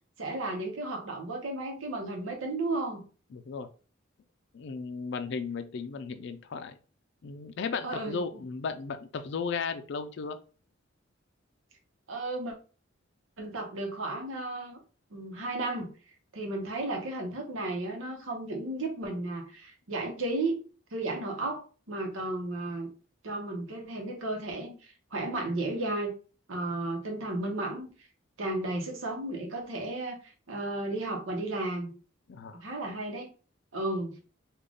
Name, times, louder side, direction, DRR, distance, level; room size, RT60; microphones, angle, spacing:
voice 1, 0.2-3.0 7.8-8.2 12.1-12.5 13.4-14.8 15.1-15.9 16.3-20.6 20.9-22.9 23.2-26.1 26.5-27.9 28.4-31.9 32.6-33.3 33.7-34.1, right 2 dB, 85° right, 2 dB, 0.9 m, -34 dB
voice 2, 3.3-3.7 4.5-6.8 7.2-10.4 32.3-32.6, left 5 dB, 60° left, 10 dB, 0.4 m, -35 dB
3.7 x 2.4 x 3.5 m, 0.37 s
head